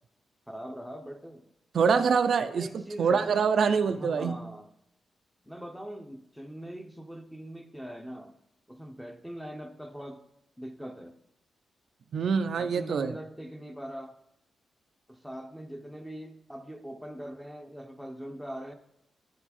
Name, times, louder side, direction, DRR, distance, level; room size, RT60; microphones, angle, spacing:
voice 1, 0.5-1.5 2.5-3.4 3.9-4.7 5.4-8.4 8.7-10.2 10.6-11.2 12.5-14.2 15.1-18.7, equal, ahead, 7 dB, 0.6 m, -42 dB
voice 2, 1.7-2.7 3.0-4.4 12.1-13.1, right 6 dB, 55° right, 9 dB, 0.3 m, -25 dB
9.7 x 4.6 x 4.2 m, 0.82 s
wide cardioid pair, 180°, 0 cm